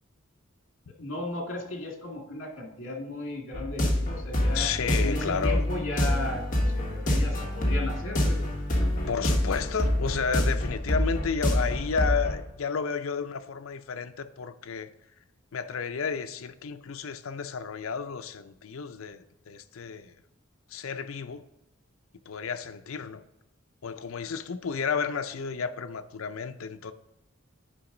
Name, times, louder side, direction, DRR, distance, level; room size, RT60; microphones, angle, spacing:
voice 1, 1.0-4.7 5.0-8.4 8.8-8.9, left 2 dB, 70° left, 1 dB, 1.9 m, -36 dB
sound 1, 3.5-12.3, left 1 dB, 40° left, 1.5 m, -27 dB
voice 2, 4.5-5.6 9.1-14.9 15.5-20.1 20.7-21.4 22.3-23.2 23.8-26.9, left 6 dB, 85° left, 11 dB, 0.5 m, -32 dB
10.0 x 5.1 x 3.8 m, 0.91 s
head